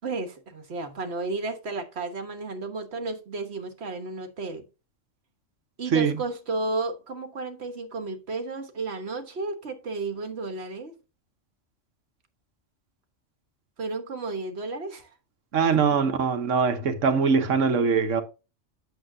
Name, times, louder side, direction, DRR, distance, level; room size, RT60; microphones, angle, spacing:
voice 1, 0.0-4.6 5.8-11.0 13.8-15.1, right 3 dB, 60° right, 1.5 m, -33 dB
voice 2, 15.5-18.2, right 5 dB, 75° right, 1.4 m, -22 dB
8.9 x 7.0 x 2.7 m
omnidirectional pair, 1.3 m